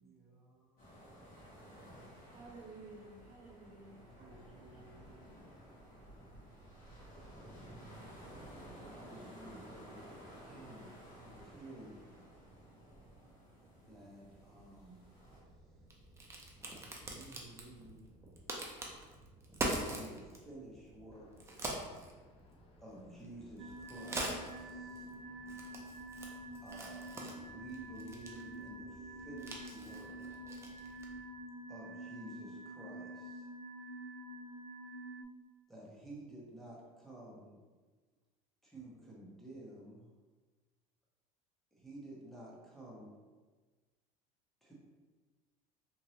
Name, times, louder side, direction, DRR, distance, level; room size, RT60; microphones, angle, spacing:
voice 1, 0.0-1.4 3.8-5.8 8.8-10.1 10.5-10.9 11.2-12.1 13.8-15.1 16.3-18.3 19.1-21.3 22.8-25.1 26.6-30.3 31.7-33.5 35.7-37.6 38.6-40.1 41.7-43.2 44.6-44.7, right 1 dB, ahead, -5 dB, 0.9 m, -53 dB
sound 1, 0.8-15.4, right 1 dB, 50° left, 1.4 m, -54 dB
voice 2, 2.3-4.3, right 3 dB, 45° right, -3 dB, 0.9 m, -53 dB
Crack, 15.2-31.2, right 1 dB, 15° right, 0.5 m, -45 dB
voice 3, 21.7-22.8 24.7-25.8, left 4 dB, 35° left, 1 dB, 0.4 m, -67 dB
sound 2, 23.6-35.2, right 1 dB, 85° right, 0.4 m, -48 dB
3.1 x 2.6 x 2.8 m, 1.3 s
supercardioid pair, 120°, 17 cm